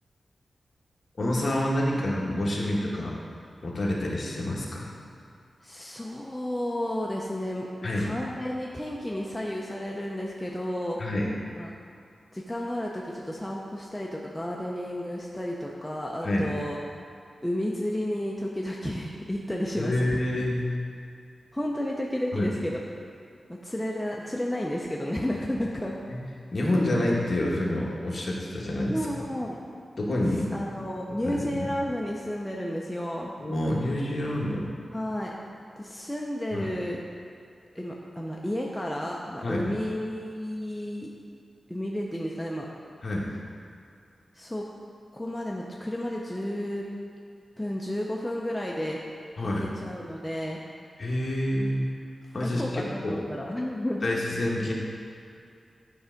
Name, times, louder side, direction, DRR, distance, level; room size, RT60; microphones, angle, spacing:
voice 1, 1.2-3.1 3.6-4.9 7.8-8.1 11.0-11.3 16.2-16.5 19.8-20.7 22.3-22.5 26.1-26.2 26.5-29.2 30.0-30.5 31.1-31.7 33.4-34.7 36.5-36.7 39.4-39.7 43.0-43.3 49.4-49.7 51.0-51.9 52.3-53.2 54.0-54.7, left 1 dB, 40° left, -3 dB, 1.2 m, -28 dB
voice 2, 5.6-7.7 8.0-11.0 11.5-11.7 12.3-16.8 17.4-20.2 21.5-22.8 23.5-25.9 28.9-29.6 30.5-33.3 34.9-35.3 35.8-37.0 37.7-41.1 41.7-42.7 44.3-44.7 45.1-46.9 47.6-49.0 49.4-50.6 52.4-54.1, left 1 dB, 5° left, -3 dB, 0.5 m, -32 dB
9.8 x 3.3 x 5.0 m, 2.5 s
wide cardioid pair, 160°, 0 cm